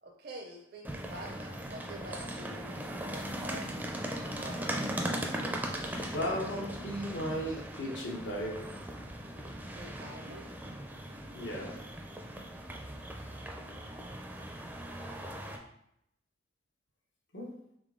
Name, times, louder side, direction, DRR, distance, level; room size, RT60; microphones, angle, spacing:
voice 1, 0.0-4.8 9.8-10.5, right 1 dB, 55° right, 0 dB, 0.5 m, -47 dB
sound 1, 0.8-15.6, right 1 dB, 10° right, 0.4 m, -39 dB
voice 2, 5.9-8.8 11.3-11.8 17.3-17.5, equal, 85° left, -1 dB, 1.0 m, -36 dB
3.8 x 3.3 x 3.7 m, 0.77 s
head